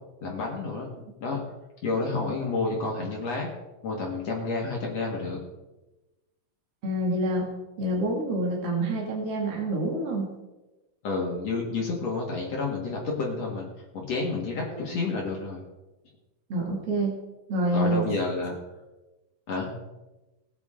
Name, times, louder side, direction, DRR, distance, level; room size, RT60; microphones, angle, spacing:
voice 1, 0.2-0.9 1.2-1.4 1.8-3.5 3.8-5.4 11.0-13.7 13.9-15.6 17.7-18.5 19.5-19.7, left 3 dB, 60° left, -2 dB, 1.8 m, -29 dB
voice 2, 6.8-7.5 7.8-10.3 14.7-14.9 16.5-17.2 17.5-18.0, right 1 dB, 40° right, -2 dB, 2.4 m, -27 dB
19.0 x 9.2 x 3.8 m, 1.1 s
omnidirectional pair, 5.6 m